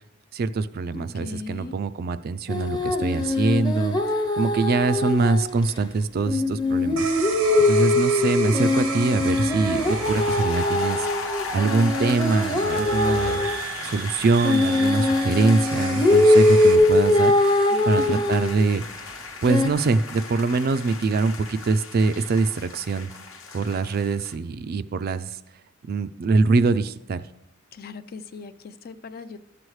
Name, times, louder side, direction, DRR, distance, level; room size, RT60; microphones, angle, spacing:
voice 1, 0.3-4.0 4.4-7.1 7.6-11.0 11.5-13.5 13.8-17.3 17.9-18.8 19.4-23.1 23.5-25.3 25.9-27.2, right 3 dB, 45° right, 13 dB, 0.3 m, -23 dB
voice 2, 0.9-1.7 17.7-18.2 27.8-29.4, left 3 dB, 45° left, 12 dB, 0.4 m, -37 dB
sound 1, 2.5-5.4 5.7-5.8 6.3-13.6 14.4-18.6 19.5-19.7, left 2 dB, 20° left, 0.8 m, -21 dB
sound 2, 7.0-16.8, right 5 dB, 90° right, 0.9 m, -34 dB
sound 3, 9.7-24.3, left 4 dB, 70° left, 1.0 m, -36 dB
13.0 x 7.7 x 3.2 m, 0.90 s
head